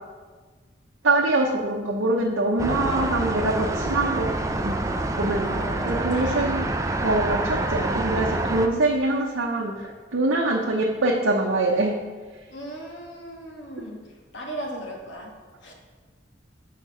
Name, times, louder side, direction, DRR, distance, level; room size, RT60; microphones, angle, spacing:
voice 1, 1.0-4.3 4.6-4.8 5.2-5.6 5.8-6.7 7.0-11.9, right 2 dB, 75° right, -2 dB, 0.7 m, -24 dB
sound 1, 2.6-8.7, right 2 dB, 15° right, 0.4 m, -27 dB
voice 2, 5.4-6.5 12.5-15.7, right 1 dB, 65° left, 0 dB, 1.3 m, -38 dB
6.6 x 4.6 x 5.5 m, 1.4 s
head